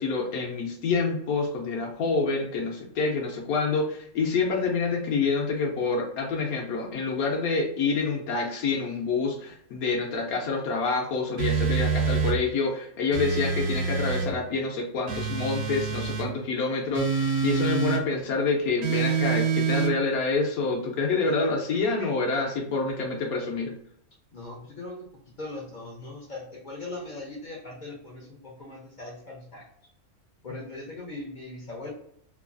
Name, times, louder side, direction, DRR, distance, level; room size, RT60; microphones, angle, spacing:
voice 1, 0.0-23.7, left 4 dB, 80° left, 0 dB, 1.1 m, -27 dB
sound 1, 11.4-12.4 13.1-14.3 15.1-16.3 16.9-18.0 18.8-19.9, right 6 dB, 90° right, 1.2 m, -26 dB
voice 2, 21.4-22.1 24.3-25.0 25.4-29.7 30.4-31.9, left 2 dB, 55° left, -3 dB, 0.5 m, -40 dB
3.0 x 2.3 x 2.4 m, 0.70 s
omnidirectional pair, 1.5 m